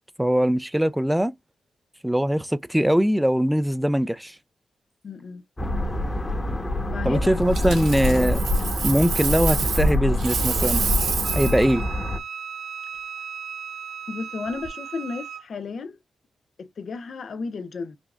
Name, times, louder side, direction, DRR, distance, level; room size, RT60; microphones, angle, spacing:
voice 1, 0.2-1.3 2.0-4.4 7.0-8.4 8.8-10.8 11.3-11.9, equal, 5° right, 0.4 m, -21 dB
voice 2, 5.0-5.4 6.9-7.8 14.1-16.0 16.6-18.0, left 4 dB, 65° left, 0.5 m, -33 dB
sound 1, 5.6-12.2, left 1 dB, 25° left, 1.0 m, -25 dB
Coin (dropping), 7.5-9.9 10.2-11.6 14.5-14.7, right 6 dB, 90° right, 1.4 m, -28 dB
Wind instrument woodwind instrument, 11.2-15.5, right 7 dB, 70° right, 0.5 m, -36 dB
4.9 x 2.4 x 2.4 m
cardioid pair, 55°, 0 cm